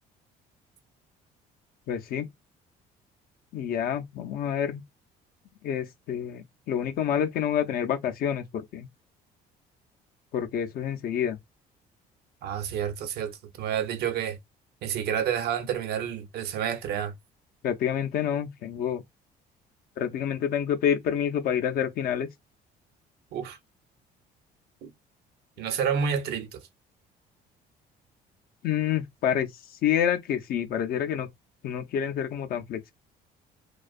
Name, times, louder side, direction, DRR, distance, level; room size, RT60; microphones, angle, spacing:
voice 1, 1.9-2.3 3.5-4.8 5.6-8.9 10.3-11.4 17.6-19.0 20.0-22.3 28.6-29.5 29.8-31.3 31.6-32.9, left 9 dB, 60° left, 0.4 m, -28 dB
voice 2, 12.4-14.4 14.8-17.1 23.3-23.6 24.8-24.9 25.6-26.6, right 8 dB, 70° right, 0.7 m, -29 dB
2.5 x 2.2 x 2.4 m
cardioid pair, 110°, 17 cm